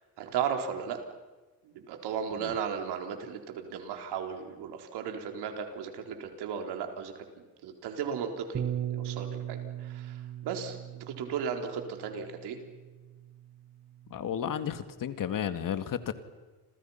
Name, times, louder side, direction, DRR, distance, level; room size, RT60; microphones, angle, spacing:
voice 1, 0.2-1.0 1.7-7.1 7.6-8.6 8.9-10.2 10.4-10.8 11.1-12.6, right 7 dB, 70° right, 4 dB, 4.2 m, -35 dB
Bass guitar, 8.5-14.8, right 10 dB, 35° right, 1.7 m, -39 dB
voice 2, 14.1-16.1, left 9 dB, 50° left, 10 dB, 2.0 m, -33 dB
30.0 x 26.5 x 5.8 m, 1.2 s
supercardioid pair, 75°, 41 cm